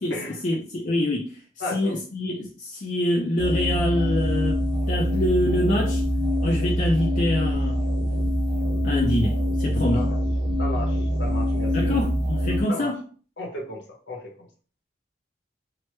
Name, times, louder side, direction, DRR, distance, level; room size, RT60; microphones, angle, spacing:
voice 1, 0.0-4.6 4.9-6.0 6.4-7.8 8.8-10.1 11.7-13.0, left 1 dB, 40° left, 0.4 m, -25 dB
voice 2, 1.6-1.9 9.9-10.1 10.6-12.0 12.7-12.9 13.4-14.3, left 1 dB, 70° left, 0.9 m, -34 dB
sound 1, 3.4-12.6, equal, 90° right, 1.1 m, -24 dB
3.0 x 2.1 x 3.1 m
head